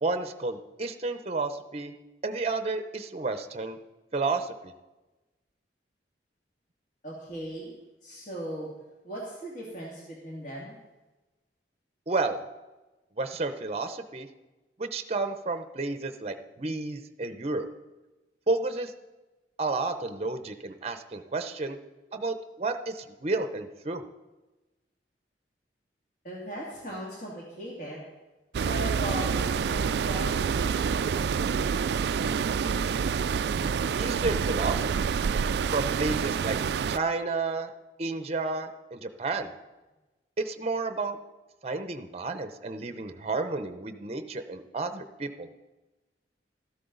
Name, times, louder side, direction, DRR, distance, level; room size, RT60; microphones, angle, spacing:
voice 1, 0.0-1.9 2.2-3.8 4.1-4.7 12.1-12.4 13.2-14.3 14.8-17.7 18.5-18.9 19.6-21.8 22.1-24.0 34.0-35.1 35.7-36.6 36.9-37.7 38.0-39.5 40.4-41.2 41.6-45.5, right 3 dB, 35° right, 9 dB, 0.7 m, -31 dB
voice 2, 7.0-7.7 8.0-8.7 9.0-10.8 26.2-28.0 28.6-30.7 33.5-33.7, right 1 dB, 45° left, -4 dB, 2.2 m, -38 dB
sound 1, 28.5-37.0, right 6 dB, 65° right, 0.3 m, -27 dB
13.5 x 12.0 x 3.9 m, 1.1 s
head